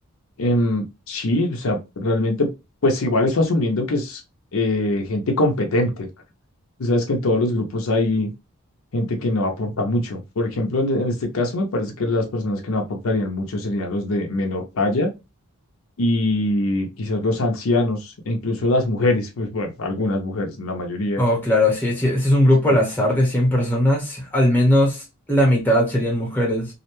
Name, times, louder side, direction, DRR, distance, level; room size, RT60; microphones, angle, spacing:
voice 1, 0.4-2.5 2.8-4.2 4.5-6.1 6.8-8.3 8.9-15.1 16.0-21.2, left 2 dB, 65° left, 0.5 m, -22 dB
voice 2, 21.2-25.0 25.3-26.7, left 1 dB, 10° left, 0.8 m, -18 dB
2.4 x 2.1 x 2.9 m
head